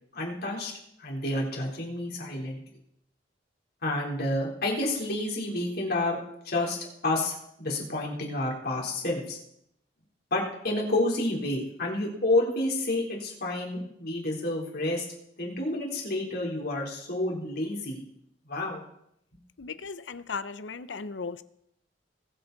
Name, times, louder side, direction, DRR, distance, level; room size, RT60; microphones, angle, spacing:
voice 1, 0.1-0.7 1.0-2.6 3.8-6.2 6.5-6.8 7.0-9.4 10.3-15.1 15.4-18.0 18.5-18.8, left 2 dB, 60° left, -1 dB, 3.6 m, -29 dB
voice 2, 19.6-21.4, left 4 dB, 90° left, 14 dB, 0.7 m, -36 dB
21.0 x 8.0 x 4.0 m, 0.74 s
head